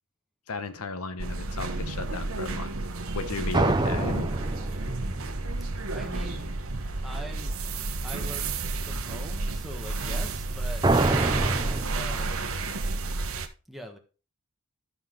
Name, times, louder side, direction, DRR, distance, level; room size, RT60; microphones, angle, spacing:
voice 1, 0.5-2.7 3.1-4.3, left 3 dB, 90° left, 10 dB, 1.1 m, -35 dB
sound 1, 1.2-13.5, right 3 dB, 70° right, 1.1 m, -31 dB
sound 2, 3.5-6.6 10.8-11.9, right 2 dB, 20° right, 0.6 m, -26 dB
voice 2, 5.9-6.5 7.0-7.6 8.0-11.1 11.9-12.6 13.7-14.0, right 1 dB, ahead, 2 dB, 1.4 m, -42 dB
12.5 x 5.7 x 3.8 m, 0.33 s
head